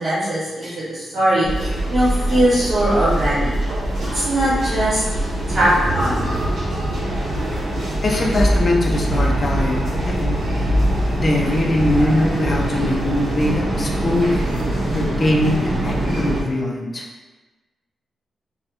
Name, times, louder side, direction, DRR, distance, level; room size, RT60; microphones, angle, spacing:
voice 1, 0.0-3.5 4.1-5.0 5.5-6.3, right 1 dB, 40° right, -11 dB, 0.9 m, -20 dB
sound 1, 1.4-16.4, right 1 dB, 85° right, 0.7 m, -22 dB
voice 2, 8.0-10.4 11.2-14.4 14.8-17.1, left 1 dB, 35° left, 0 dB, 0.4 m, -21 dB
2.3 x 2.0 x 2.8 m, 1.2 s
wide cardioid pair, 115°, 0 cm